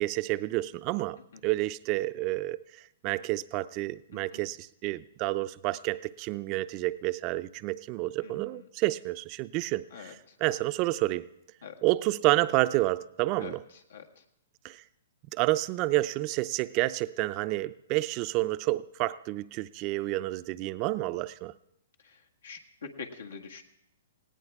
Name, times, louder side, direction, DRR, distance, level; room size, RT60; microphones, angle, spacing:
voice 1, 0.0-1.2 1.4-2.6 3.0-11.3 11.8-13.6 14.6-14.8 15.3-21.5, right 18 dB, 35° right, 14 dB, 0.5 m, -29 dB
voice 2, 8.2-8.6 9.9-10.1 11.6-11.8 13.4-13.6 13.9-14.0 22.0-23.6, left 5 dB, 85° left, 3 dB, 1.7 m, -44 dB
18.5 x 17.5 x 3.6 m, 0.80 s
hypercardioid pair, 140°, 0 cm